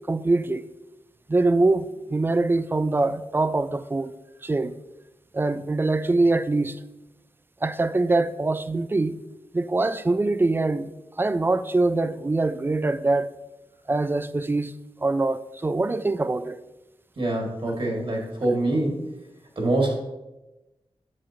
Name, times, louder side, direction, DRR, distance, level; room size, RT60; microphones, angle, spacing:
voice 1, 0.1-0.7 1.3-4.1 4.4-4.8 5.3-6.8 7.6-9.2 9.5-10.9 11.2-13.3 13.9-14.7 15.0-16.6, right 2 dB, 20° right, 0.3 m, -23 dB
voice 2, 17.2-19.0 19.6-20.0, right 2 dB, 60° right, 2.0 m, -24 dB
7.7 x 7.2 x 2.8 m
wide cardioid pair, 100°, 10 cm